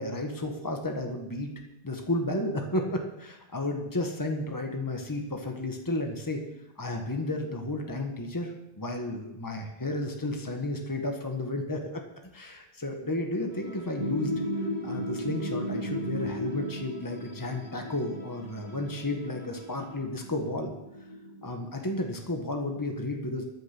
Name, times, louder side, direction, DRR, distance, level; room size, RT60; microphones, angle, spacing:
voice 1, 0.0-1.5 1.8-6.4 6.8-12.0 12.3-14.3 14.6-20.7 21.4-23.4, left 1 dB, 20° left, 3 dB, 1.6 m, -32 dB
Bowed string instrument, 13.5-20.1, equal, 45° left, 6.4 m, -53 dB
sound 1, 14.0-21.5, equal, 45° right, 1.6 m, -35 dB
14.5 x 10.0 x 6.1 m, 0.90 s
omnidirectional pair, 1.0 m